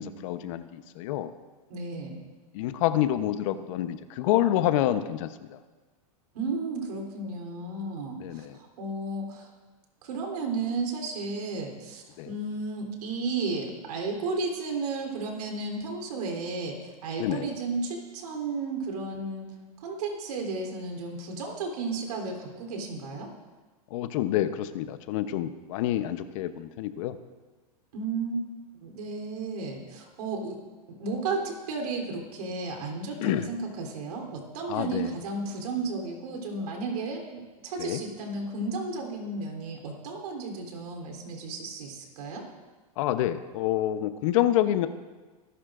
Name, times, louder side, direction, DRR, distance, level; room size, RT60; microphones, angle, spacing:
voice 1, 0.0-1.3 2.5-5.6 8.2-8.6 12.2-12.3 17.2-17.5 23.9-27.2 33.2-33.5 34.7-35.1 37.8-38.0 43.0-44.9, left 12 dB, 60° left, 11 dB, 0.9 m, -27 dB
voice 2, 1.7-2.3 6.3-9.5 10.0-19.5 19.8-23.3 27.9-28.4 28.8-30.6 30.9-42.5, right 3 dB, 75° right, 1 dB, 3.4 m, -33 dB
25.0 x 11.5 x 2.6 m, 1.3 s
supercardioid pair, 130°, 19 cm